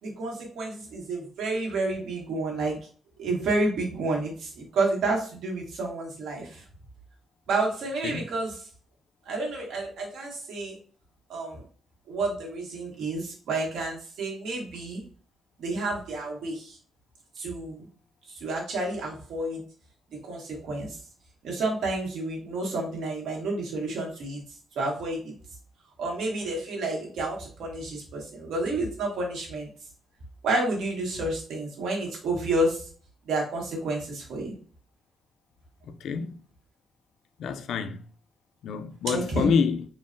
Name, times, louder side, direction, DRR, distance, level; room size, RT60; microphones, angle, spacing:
voice 1, 0.0-2.8 3.2-6.6 7.5-8.7 9.2-10.8 11.3-11.6 12.1-15.0 15.6-16.8 17.4-17.8 18.3-19.6 20.2-21.0 21.4-24.4 24.7-25.3 26.0-29.7 30.4-32.9 33.2-34.6 39.1-39.5, right 2 dB, 75° right, 1.1 m, -30 dB
voice 2, 35.9-36.3 37.4-38.0 38.6-39.9, left 6 dB, 70° left, 0.3 m, -27 dB
3.7 x 2.1 x 2.5 m
cardioid pair, 175°, 0 cm